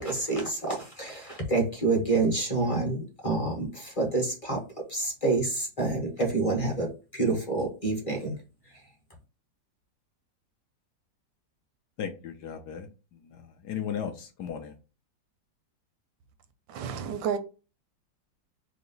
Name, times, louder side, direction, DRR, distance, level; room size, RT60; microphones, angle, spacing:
voice 1, 0.0-4.6 4.9-8.3, right 3 dB, 25° left, 0.9 m, -28 dB
voice 2, 12.0-12.9 13.3-14.7, left 8 dB, 70° left, 1.1 m, -36 dB
voice 3, 16.7-17.4, right 7 dB, 85° right, 1.4 m, -31 dB
4.8 x 2.1 x 3.8 m
omnidirectional pair, 2.0 m